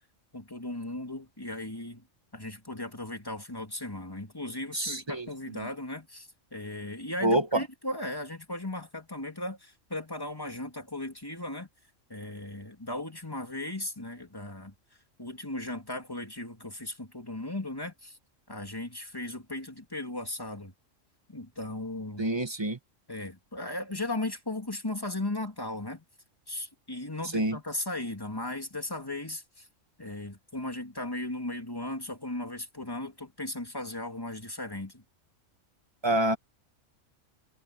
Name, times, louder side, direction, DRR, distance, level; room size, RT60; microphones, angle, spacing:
voice 1, 0.3-2.1 2.3-11.7 12.1-14.7 15.2-18.2 18.5-20.7 21.3-22.3 23.1-26.0 26.5-29.7 30.0-35.0, left 1 dB, 15° left, 2.8 m, -37 dB
voice 2, 4.7-5.2 7.2-7.4 22.2-22.8 27.3-27.6 36.0-36.4, right 1 dB, 20° right, 1.6 m, -26 dB
omnidirectional pair, 1.3 m